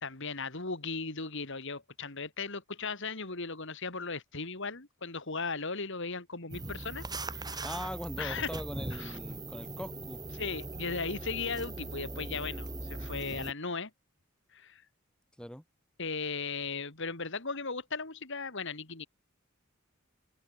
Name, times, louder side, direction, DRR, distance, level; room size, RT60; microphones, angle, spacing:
voice 1, 0.0-7.7 8.2-8.5 8.9-9.2 10.4-13.9 14.5-14.8 16.0-19.1, left 4 dB, 65° left, 3.2 m, -37 dB
sound 1, 6.5-13.5, right 2 dB, 20° right, 2.6 m, -40 dB
voice 2, 7.6-10.2 15.4-15.6, equal, 5° left, 2.3 m, -41 dB
head